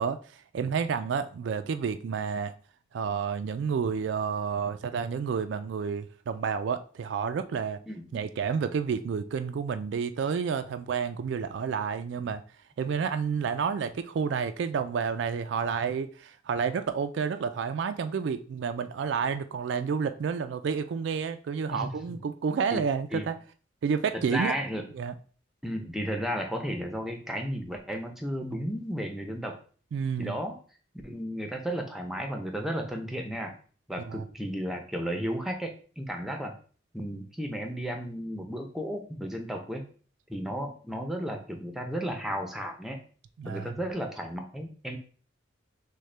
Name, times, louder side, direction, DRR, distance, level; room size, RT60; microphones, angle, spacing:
voice 1, 0.0-2.5 2.9-7.8 8.1-12.4 12.8-23.4 23.8-24.5 24.9-25.1 29.9-30.4 34.1-34.3 43.4-43.7, right 6 dB, 65° right, 0.3 m, -30 dB
voice 2, 21.7-22.2 22.7-22.8 23.1-23.3 24.1-24.8 25.6-29.6 30.2-30.6 31.0-33.5 33.9-36.5 36.9-39.9 40.3-43.0 43.4-45.0, equal, ahead, 0.5 m, -34 dB
6.3 x 2.2 x 3.2 m
head